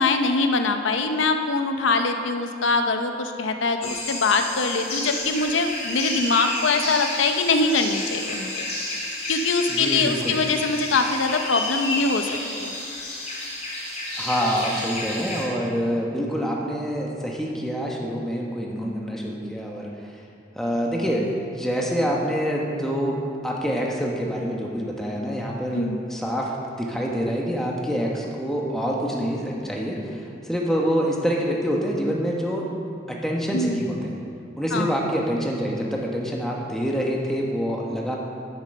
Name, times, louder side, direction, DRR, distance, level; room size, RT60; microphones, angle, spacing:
voice 1, 0.0-8.7 9.3-12.3 12.6-12.7 25.7-26.0 33.5-33.8 34.7-34.9, left 3 dB, 80° left, 6 dB, 0.7 m, -23 dB
sound 1, 3.8-15.4, left 2 dB, 35° left, 3.1 m, -31 dB
voice 2, 9.7-10.4 14.2-19.9 20.5-23.2 23.4-32.7 33.1-34.1 34.6-38.2, equal, ahead, -2 dB, 1.2 m, -26 dB
10.5 x 7.5 x 6.5 m, 2.5 s
head